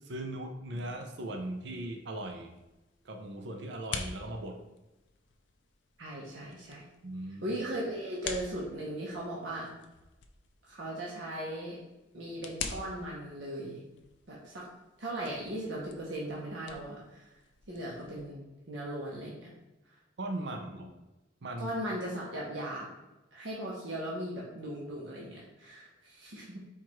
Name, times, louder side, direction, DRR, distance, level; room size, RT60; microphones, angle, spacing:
voice 1, 0.0-2.5 3.0-4.6 7.0-7.6 20.2-20.9 21.4-21.7, right 1 dB, 65° right, 4 dB, 0.6 m, -39 dB
sound 1, 0.7-18.3, left 6 dB, 70° left, 0.5 m, -47 dB
voice 2, 6.0-6.8 7.4-9.7 10.7-11.8 12.1-13.8 14.3-14.7 15.0-17.2 17.7-19.5 20.4-20.8 21.6-22.9 23.3-26.6, right 1 dB, 85° right, -4 dB, 0.9 m, -38 dB
4.6 x 2.5 x 4.3 m, 1.0 s
head